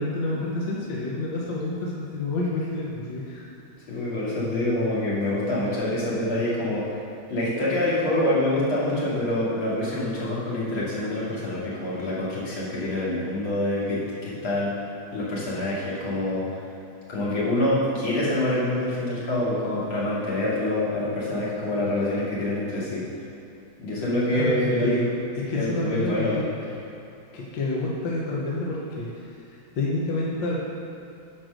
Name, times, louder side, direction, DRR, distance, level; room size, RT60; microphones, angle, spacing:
voice 1, 0.0-3.5 24.3-25.0 25.3-26.4 27.3-29.2 29.7-30.6, left 2 dB, 70° left, -4 dB, 1.7 m, -28 dB
voice 2, 3.9-6.8 7.3-14.7 15.1-16.4 17.1-23.1 23.8-25.1 25.5-26.8, left 1 dB, 90° left, -8 dB, 3.2 m, -26 dB
10.5 x 4.7 x 6.4 m, 2.7 s
omnidirectional pair, 2.2 m